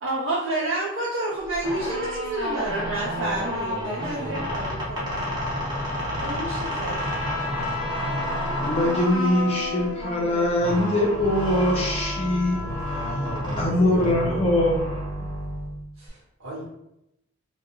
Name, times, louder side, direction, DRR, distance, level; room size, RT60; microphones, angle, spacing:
voice 1, 0.0-5.3 6.2-7.0, right 2 dB, 60° right, -4 dB, 0.4 m, -29 dB
sound 1, 1.5-16.1, left 1 dB, 20° right, 0.7 m, -30 dB
voice 2, 3.2-4.4 12.4-14.5 16.0-16.7, right 1 dB, 80° right, -5 dB, 1.0 m, -36 dB
Trumpet, 6.9-13.5, left 2 dB, 90° left, 0.5 m, -36 dB
voice 3, 8.7-12.6 13.6-14.8, left 1 dB, 30° left, -1 dB, 0.4 m, -22 dB
2.3 x 2.2 x 2.9 m, 0.84 s
head